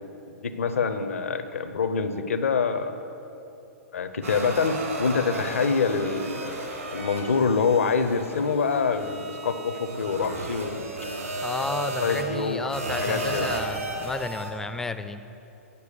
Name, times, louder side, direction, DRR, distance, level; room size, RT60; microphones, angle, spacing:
voice 1, 0.3-3.0 3.9-6.6 6.9-10.9 11.8-13.5, left 5 dB, 65° left, 10 dB, 0.6 m, -26 dB
sound 1, 4.2-14.5, right 1 dB, 75° right, 2.0 m, -34 dB
voice 2, 11.4-15.2, left 3 dB, 5° left, 10 dB, 0.3 m, -32 dB
8.1 x 6.9 x 6.7 m, 2.9 s
figure-of-eight pair, 110°, 8 cm